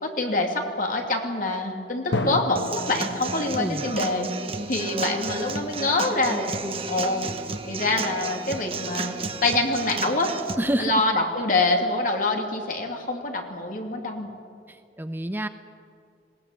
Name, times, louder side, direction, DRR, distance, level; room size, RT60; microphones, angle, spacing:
voice 1, 0.0-4.3 4.7-7.2 7.7-9.1 9.4-10.3 10.8-14.3, left 2 dB, 50° left, 2 dB, 2.7 m, -25 dB
Drum, 2.1-5.8, left 2 dB, 80° left, 1.4 m, -34 dB
Human voice / Acoustic guitar / Drum, 2.6-10.5, right 4 dB, 35° right, 1.1 m, -33 dB
voice 2, 3.6-4.0 10.6-11.0 14.7-15.5, right 1 dB, 10° right, 9 dB, 0.6 m, -28 dB
20.5 x 17.5 x 9.3 m, 2.4 s
head